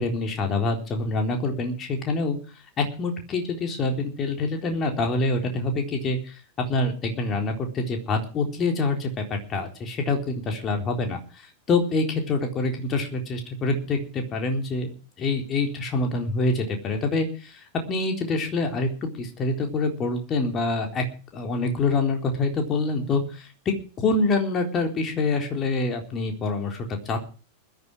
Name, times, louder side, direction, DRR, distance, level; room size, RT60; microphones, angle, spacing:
voice 1, 0.0-2.4 2.8-6.4 6.7-21.0 21.3-27.2, left 3 dB, 25° left, 3 dB, 3.9 m, -26 dB
20.5 x 11.0 x 4.9 m, 0.37 s
figure-of-eight pair, 90°, 0 cm